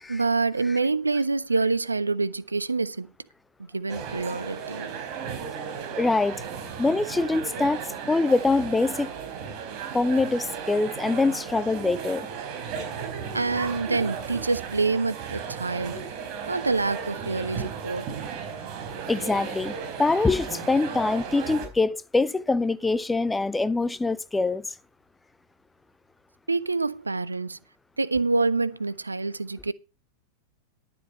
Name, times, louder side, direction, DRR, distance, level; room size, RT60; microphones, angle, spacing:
voice 1, 0.1-3.1 3.7-5.0 13.3-16.1 16.5-18.1 26.5-27.6 28.0-29.7, right 3 dB, 80° right, 0.5 m, -26 dB
sound 1, 3.9-21.7, right 6 dB, 40° right, 4.2 m, -35 dB
voice 2, 6.0-6.4 6.8-9.1 9.9-12.3 19.1-24.7, left 3 dB, 10° left, 0.6 m, -24 dB
12.0 x 7.7 x 5.2 m
figure-of-eight pair, 90°, 0 cm